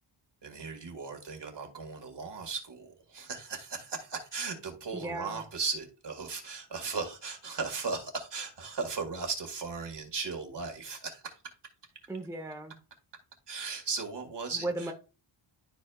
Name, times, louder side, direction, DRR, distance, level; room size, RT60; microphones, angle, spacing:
voice 1, 0.4-11.4 13.5-14.9, right 4 dB, 55° right, 1.9 m, -37 dB
voice 2, 4.9-5.4 12.1-12.8 14.6-14.9, right 2 dB, 5° right, 0.8 m, -36 dB
12.0 x 4.2 x 2.3 m
wide cardioid pair, 135°, 49 cm